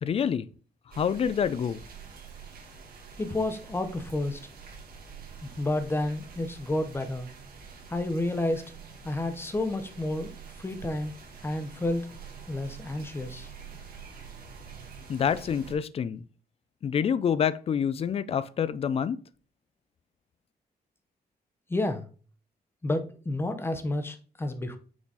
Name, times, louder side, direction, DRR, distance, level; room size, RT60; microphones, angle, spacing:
voice 1, 0.0-0.5 0.9-1.8 15.1-16.2 16.8-19.2, left 7 dB, 40° left, 0.3 m, -27 dB
sound 1, 0.9-15.7, right 6 dB, 65° right, 1.6 m, -46 dB
voice 2, 3.2-4.4 5.4-7.3 7.9-8.6 9.0-10.3 10.6-11.1 11.4-12.1 12.5-13.5 21.7-22.0 22.8-24.8, left 2 dB, 15° left, 0.7 m, -30 dB
6.0 x 3.9 x 4.0 m
wide cardioid pair, 160°, 16 cm